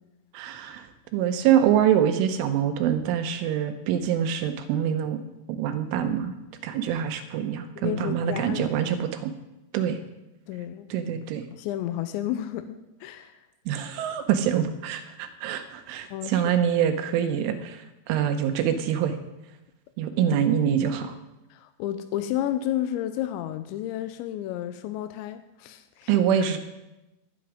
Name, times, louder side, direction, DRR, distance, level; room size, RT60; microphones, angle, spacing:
voice 1, 0.3-0.9 1.1-5.2 5.5-6.3 6.6-9.3 9.7-10.0 10.9-11.4 13.7-17.8 18.1-19.2 20.0-21.1 26.1-26.6, right 9 dB, 80° right, 8 dB, 3.2 m, -25 dB
voice 2, 7.8-8.9 10.5-10.9 11.5-13.4 16.1-16.5 20.2-20.5 21.5-26.1, left 12 dB, 85° left, 10 dB, 2.6 m, -32 dB
19.0 x 9.1 x 5.0 m, 0.99 s
omnidirectional pair, 5.9 m